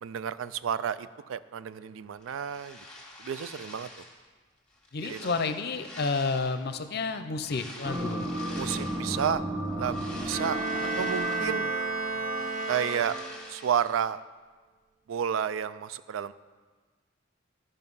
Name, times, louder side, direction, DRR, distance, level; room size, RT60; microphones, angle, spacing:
voice 1, 0.0-2.8 3.2-4.0 5.0-5.3 8.6-9.4 9.8-10.6 11.0-11.7 12.7-13.1 13.5-14.2 15.1-16.3, right 8 dB, 80° right, 15 dB, 0.4 m, -31 dB
sound 1, 2.2-4.2 4.7-6.8 7.4-9.2 9.6-11.8 12.1-14.0, left 1 dB, 5° left, 1.7 m, -46 dB
voice 2, 4.9-8.2, left 4 dB, 55° left, 10 dB, 0.6 m, -30 dB
sound 2, 7.8-13.5, right 1 dB, 10° right, 1.1 m, -34 dB
Bowed string instrument, 10.3-13.5, right 3 dB, 40° right, 1.0 m, -32 dB
13.0 x 5.5 x 5.4 m, 1.4 s
head